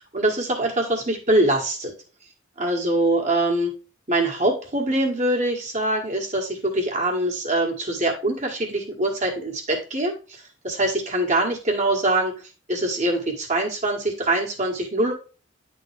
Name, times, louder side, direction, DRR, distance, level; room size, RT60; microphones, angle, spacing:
voice 1, 0.0-1.9 2.6-3.7 4.1-12.3 12.7-15.1, right 1 dB, 40° right, 0 dB, 1.5 m, -23 dB
9.4 x 3.8 x 3.3 m, 0.34 s
head